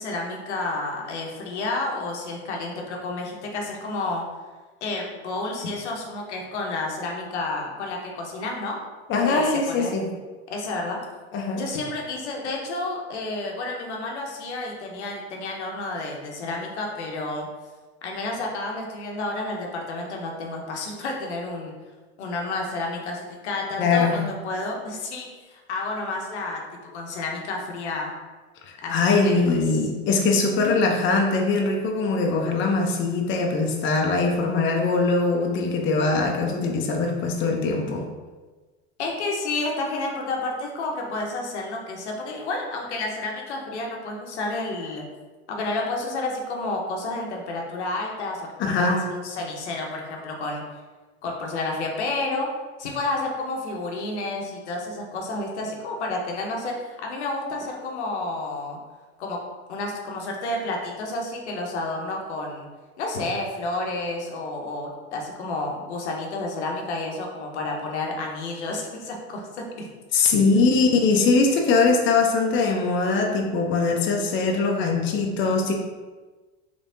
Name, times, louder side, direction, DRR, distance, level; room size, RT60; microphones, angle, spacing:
voice 1, 0.0-4.2 4.8-8.8 9.3-9.9 10.5-11.0 11.6-17.5 18.0-21.7 22.2-28.1 28.8-29.6 30.5-30.8 39.0-45.0 45.5-50.6 51.2-52.5 52.8-58.8 59.2-59.4 59.7-62.7 63.0-69.9 70.5-70.7, left 2 dB, 90° left, 0 dB, 0.8 m, -30 dB
voice 2, 9.1-10.1 11.3-11.6 23.8-24.2 28.6-38.0 48.6-49.0 70.1-75.7, left 3 dB, 35° left, 1 dB, 0.6 m, -22 dB
3.3 x 3.3 x 2.6 m, 1.3 s
hypercardioid pair, 100°, 33 cm